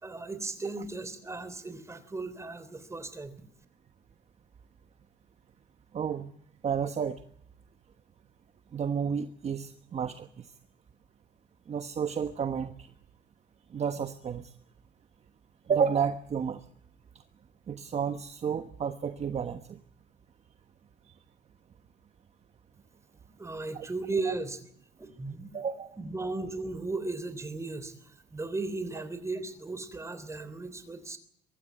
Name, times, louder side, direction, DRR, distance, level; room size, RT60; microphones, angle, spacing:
voice 1, 0.0-3.3 23.4-24.6 25.0-25.5 26.0-31.2, right 3 dB, 15° right, 12 dB, 3.3 m, -36 dB
voice 2, 5.9-6.3 6.6-7.2 8.7-10.5 11.7-12.9 13.7-14.5 15.7-16.6 17.7-19.8 23.7-23.8 24.3-24.4 25.5-26.0, right 7 dB, 40° right, 8 dB, 1.3 m, -31 dB
24.0 x 14.0 x 9.3 m, 0.69 s
cardioid pair, 110°, 17 cm